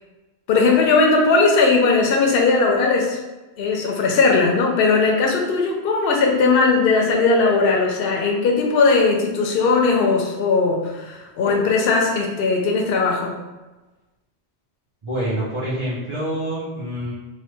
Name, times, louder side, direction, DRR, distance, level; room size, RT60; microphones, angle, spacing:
voice 1, 0.5-3.2 3.6-13.4, left 4 dB, 65° left, 1 dB, 0.8 m, -18 dB
voice 2, 15.0-17.1, equal, 35° right, -10 dB, 0.6 m, -26 dB
3.2 x 2.2 x 3.1 m, 1.1 s
omnidirectional pair, 1.1 m